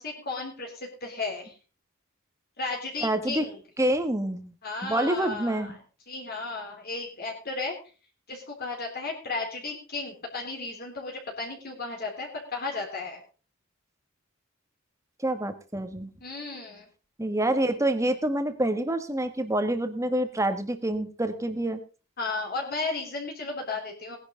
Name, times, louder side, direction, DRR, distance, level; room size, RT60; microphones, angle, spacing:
voice 1, 0.0-1.6 2.6-3.6 4.6-5.7 6.1-7.7 8.3-13.2 16.2-16.9 22.2-24.2, left 3 dB, 45° left, 0 dB, 3.7 m, -34 dB
voice 2, 3.0-3.4 3.8-4.5 4.8-5.8 15.2-16.1 17.2-21.8, right 1 dB, 15° right, 8 dB, 1.6 m, -27 dB
19.0 x 10.5 x 3.9 m, 0.35 s
head